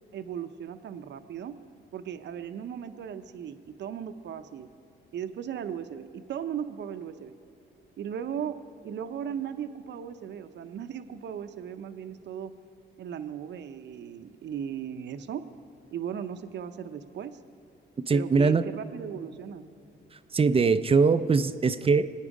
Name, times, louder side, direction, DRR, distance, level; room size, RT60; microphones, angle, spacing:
voice 1, 0.1-1.6 1.9-4.7 5.1-7.3 8.0-8.6 8.8-12.5 13.0-15.4 15.9-17.4 18.1-19.6, right 8 dB, 60° right, 10 dB, 0.7 m, -37 dB
voice 2, 18.1-18.6 20.3-22.1, right 4 dB, 30° right, 12 dB, 0.5 m, -22 dB
22.5 x 9.2 x 4.9 m, 2.6 s
cardioid pair, 90°, 20 cm